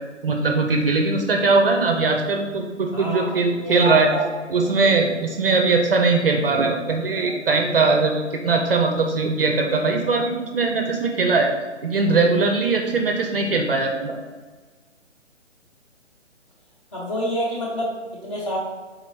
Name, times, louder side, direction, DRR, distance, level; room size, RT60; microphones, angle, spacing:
voice 1, 0.2-4.1 4.5-11.5 11.8-14.2, right 3 dB, 50° right, 3 dB, 0.4 m, -20 dB
voice 2, 2.9-4.2 4.6-5.0 7.1-7.4 16.9-18.6, equal, 25° left, -5 dB, 0.8 m, -28 dB
4.0 x 2.9 x 2.6 m, 1.3 s
figure-of-eight pair, 145°, 36 cm